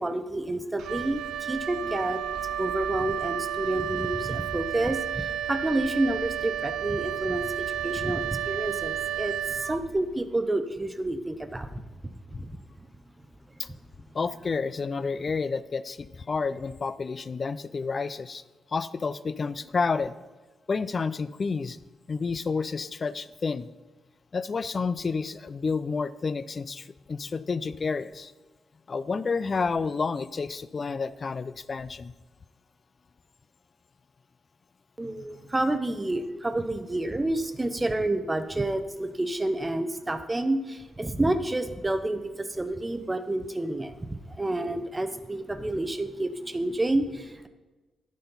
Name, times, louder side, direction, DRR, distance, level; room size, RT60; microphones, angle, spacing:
voice 1, 0.0-11.8 12.3-12.9 35.0-47.5, right 1 dB, 20° right, 10 dB, 0.7 m, -29 dB
Wind instrument woodwind instrument, 0.8-10.3, right 10 dB, 80° right, 0.3 m, -32 dB
voice 2, 14.1-18.4 18.7-20.1 20.7-21.8 22.1-23.7 24.3-28.3 28.9-32.1 35.0-35.2, left 4 dB, 40° left, 16 dB, 0.4 m, -30 dB
11.5 x 4.3 x 5.5 m, 1.2 s
cardioid pair, 70°, 0 cm